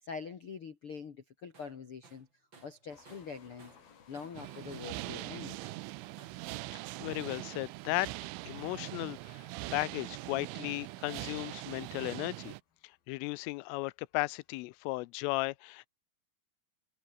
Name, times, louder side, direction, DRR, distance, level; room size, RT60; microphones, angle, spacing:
voice 1, 0.0-2.3 2.6-3.7 4.1-5.6, left 5 dB, 75° left, 1.2 m, -44 dB
Tools, 1.5-1.8 2.0-3.9 4.1-5.1 5.6-6.5, right 4 dB, 25° right, 3.8 m, -59 dB
sound 1, 2.9-14.9, left 7 dB, 50° left, 5.2 m, -65 dB
sound 2, 4.3-12.6, right 21 dB, 85° right, 3.2 m, -42 dB
voice 2, 6.7-8.1 8.4-12.5 12.8-15.9, left 23 dB, 90° left, 3.3 m, -36 dB
omnidirectional pair, 5.6 m